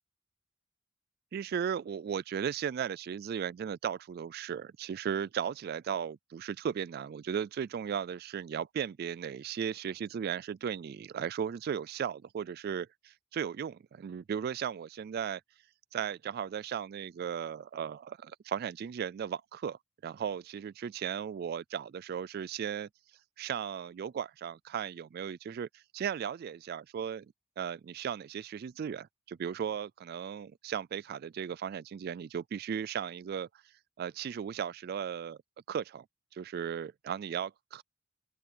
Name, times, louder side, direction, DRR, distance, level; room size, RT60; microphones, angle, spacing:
voice 1, 1.3-15.4 15.9-22.9 23.4-27.3 27.6-35.4 35.7-36.1 36.3-37.8, right 8 dB, 50° right, 0.3 m, -36 dB
open air
head